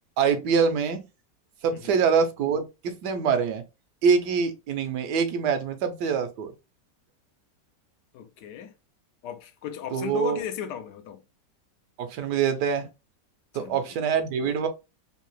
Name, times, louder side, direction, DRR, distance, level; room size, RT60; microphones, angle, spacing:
voice 1, 0.2-1.0 1.6-3.6 4.0-6.5 9.9-10.4 12.0-12.9 13.5-14.7, right 6 dB, 80° right, 1.3 m, -24 dB
voice 2, 8.1-8.7 9.2-11.2 13.5-13.8, left 9 dB, 80° left, 1.2 m, -36 dB
3.8 x 2.7 x 3.0 m
omnidirectional pair, 1.8 m